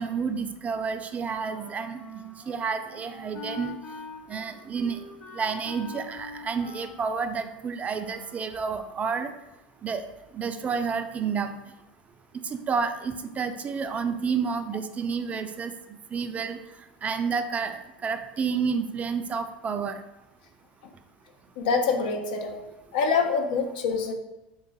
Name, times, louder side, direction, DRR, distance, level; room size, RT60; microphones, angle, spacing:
voice 1, 0.0-2.0 2.5-3.8 4.3-5.0 5.3-9.3 9.8-10.0 10.3-11.6 12.5-15.7 16.1-16.6 17.0-20.0, right 5 dB, 25° right, 8 dB, 0.3 m, -30 dB
Wind instrument woodwind instrument, 1.4-8.5, left 2 dB, 30° left, 1.0 m, -44 dB
voice 2, 21.6-22.6 22.9-24.1, left 5 dB, 75° left, 4 dB, 0.6 m, -25 dB
3.1 x 2.3 x 3.9 m, 0.99 s
hypercardioid pair, 95°, 5 cm